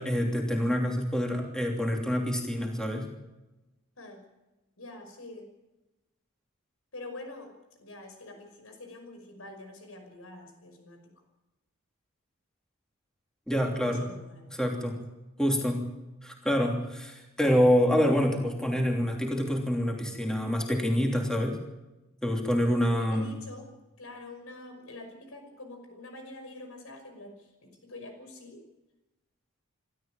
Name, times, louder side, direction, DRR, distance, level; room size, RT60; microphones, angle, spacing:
voice 1, 0.0-3.1 13.5-14.0 14.5-15.0 15.4-15.8 16.2-21.6 22.2-23.4, equal, 5° left, 1 dB, 3.0 m, -26 dB
voice 2, 4.8-5.5 6.9-7.5 7.8-11.0 13.8-14.4 22.7-23.7 24.0-28.6, left 2 dB, 75° left, 5 dB, 5.7 m, -45 dB
25.0 x 13.5 x 9.0 m, 1.0 s
head